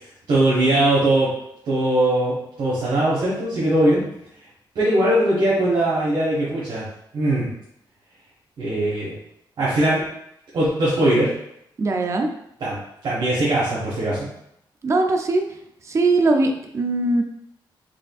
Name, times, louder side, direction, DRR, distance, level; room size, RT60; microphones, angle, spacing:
voice 1, 0.3-1.3 1.6-4.0 4.7-6.9 7.1-7.5 8.6-9.1 9.6-10.1 10.5-11.3 12.6-14.3, right 1 dB, 65° right, -9 dB, 1.5 m, -20 dB
voice 2, 11.8-12.3 14.8-15.4 15.8-17.2, right 2 dB, 35° right, 4 dB, 0.5 m, -20 dB
4.9 x 3.4 x 2.4 m, 0.77 s
wide cardioid pair, 145°, 8 cm